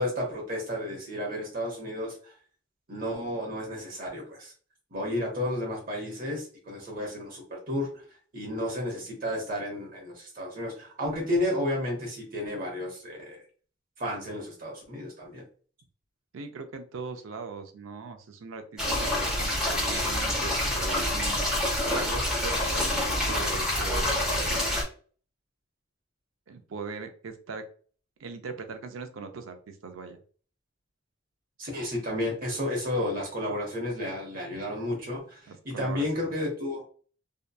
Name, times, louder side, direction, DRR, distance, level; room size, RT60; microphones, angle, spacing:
voice 1, 0.0-2.3 2.9-4.5 4.9-8.0 8.3-13.4 14.0-15.4 31.6-36.8, left 1 dB, 45° right, -1 dB, 0.8 m, -32 dB
voice 2, 16.3-21.5 21.9-24.8 26.5-27.6 28.2-30.2 35.5-36.3, right 4 dB, 90° right, 7 dB, 0.5 m, -40 dB
sound 1, 18.8-24.8, left 1 dB, 5° right, 0.8 m, -27 dB
2.7 x 2.2 x 2.2 m, 0.42 s
head